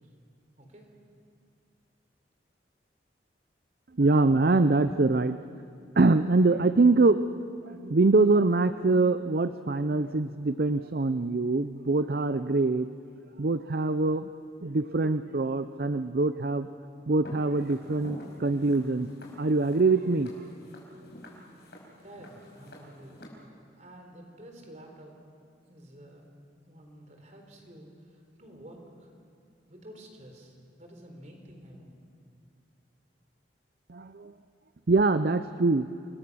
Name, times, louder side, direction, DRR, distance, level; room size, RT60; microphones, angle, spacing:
voice 1, 0.6-0.9 22.0-23.2 23.8-25.1 25.7-26.3 26.7-29.1 29.7-31.9, right 1 dB, 40° right, 3 dB, 3.9 m, -50 dB
voice 2, 4.0-5.4 6.0-7.3 7.7-12.9 13.4-14.3 14.6-16.7 17.1-19.1 19.4-20.3 33.9-34.3 34.9-35.9, right 3 dB, 55° right, 11 dB, 0.6 m, -24 dB
Walk footsteps, 17.2-23.3, equal, 65° left, 5.2 m, -48 dB
29.0 x 20.5 x 6.3 m, 2.3 s
head